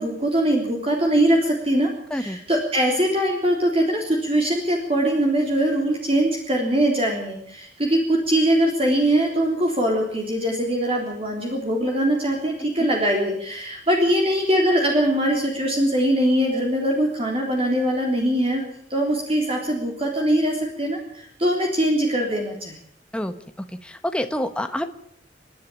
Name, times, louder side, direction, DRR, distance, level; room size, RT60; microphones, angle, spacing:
voice 1, 0.0-18.6 18.9-22.7, right 1 dB, 35° right, 0 dB, 3.6 m, -22 dB
voice 2, 23.8-24.9, left 1 dB, 5° left, 7 dB, 1.2 m, -27 dB
28.5 x 11.5 x 8.7 m, 0.68 s
head